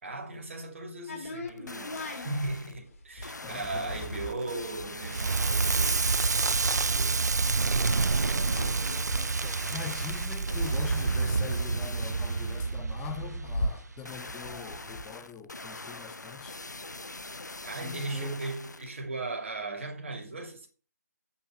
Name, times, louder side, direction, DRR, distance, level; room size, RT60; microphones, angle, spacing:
voice 1, 0.0-8.0 17.6-20.7, right 2 dB, 45° right, 2.5 m, -38 dB
sound 1, 1.1-10.6 10.9-11.0 11.2-15.1, left 1 dB, 55° left, 3.4 m, -40 dB
sound 2, 1.5-2.8 3.2-6.8 7.8-12.8 14.0-19.0 19.5-19.6, left 2 dB, 80° left, 0.7 m, -43 dB
voice 2, 3.4-4.0 9.4-16.6 17.8-18.4, left 8 dB, 10° left, 0.7 m, -43 dB
Crackle, 5.0-14.0, right 4 dB, 70° right, 0.4 m, -28 dB
8.4 x 5.6 x 6.3 m
figure-of-eight pair, 145°, 9 cm